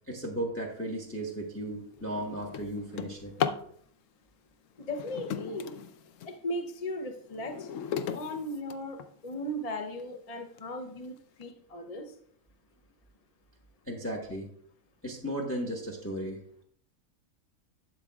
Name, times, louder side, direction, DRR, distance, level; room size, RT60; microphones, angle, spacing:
voice 1, 0.1-3.3 13.9-14.5 15.0-16.4, right 1 dB, 10° left, 0 dB, 1.1 m, -35 dB
Drawer open or close, 1.0-1.3 1.7-3.7 4.8-6.4 6.9-9.3 10.0-10.1 10.6-10.7 11.0-11.4, left 8 dB, 70° left, 0.9 m, -37 dB
voice 2, 4.8-5.7 6.3-7.7 8.1-11.1 11.4-12.1, left 1 dB, 35° left, 4 dB, 0.6 m, -37 dB
11.5 x 8.0 x 2.3 m, 0.64 s
omnidirectional pair, 1.5 m